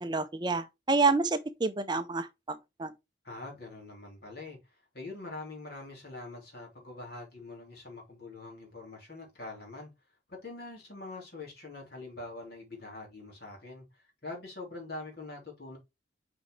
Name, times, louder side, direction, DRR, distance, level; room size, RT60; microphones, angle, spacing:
voice 1, 0.0-2.9, right 3 dB, 25° right, 0.4 m, -29 dB
voice 2, 3.2-9.9 10.3-15.8, left 2 dB, 55° left, 3.2 m, -44 dB
6.2 x 5.3 x 3.1 m
head